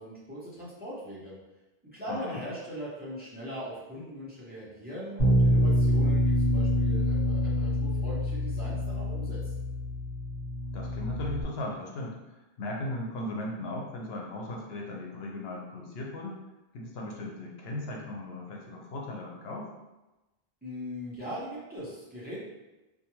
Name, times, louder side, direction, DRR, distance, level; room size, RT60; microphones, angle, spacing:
voice 1, 0.0-1.4 1.9-9.4 20.6-22.4, equal, 10° right, -8 dB, 0.6 m, -40 dB
voice 2, 2.1-2.4 10.7-16.4 16.7-19.7, left 1 dB, 80° left, -1 dB, 0.8 m, -37 dB
Bass guitar, 5.2-11.4, equal, 50° left, 1.1 m, -26 dB
2.4 x 2.2 x 2.9 m, 1.0 s
omnidirectional pair, 1.0 m